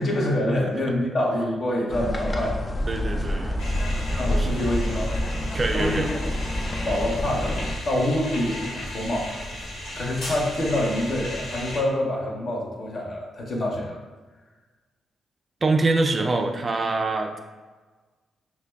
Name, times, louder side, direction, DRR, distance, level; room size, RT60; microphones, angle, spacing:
voice 1, 0.0-2.6 4.2-5.1 5.7-6.2 6.8-9.3 9.9-14.0, left 1 dB, 55° left, -1 dB, 0.8 m, -26 dB
sound 1, 1.9-7.8, left 1 dB, 30° left, 0.3 m, -27 dB
voice 2, 2.9-3.5 4.4-4.6 5.5-6.1 15.6-17.4, right 3 dB, 40° right, 4 dB, 0.4 m, -24 dB
sound 2, 3.6-11.8, left 1 dB, 85° left, 1.4 m, -35 dB
5.7 x 2.2 x 2.3 m, 1.3 s
supercardioid pair, 60°, 0 cm